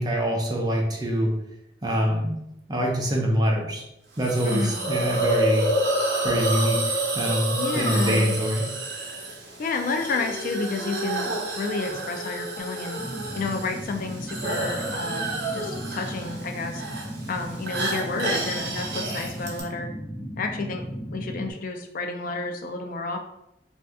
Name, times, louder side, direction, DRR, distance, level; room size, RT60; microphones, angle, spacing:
voice 1, 0.0-1.3 1.8-2.4 2.7-3.8 4.2-5.7 6.2-8.7, equal, 25° right, -1 dB, 0.5 m, -25 dB
Hiss, 4.2-19.6, right 1 dB, 70° right, 0.7 m, -29 dB
voice 2, 4.4-4.8 7.6-8.3 9.6-13.0 13.4-16.8 17.3-19.9 20.4-20.8 21.1-23.2, left 3 dB, 50° left, 5 dB, 0.3 m, -30 dB
sound 1, 13.0-21.5, equal, 30° left, 0.8 m, -36 dB
2.7 x 2.3 x 3.4 m, 0.82 s
head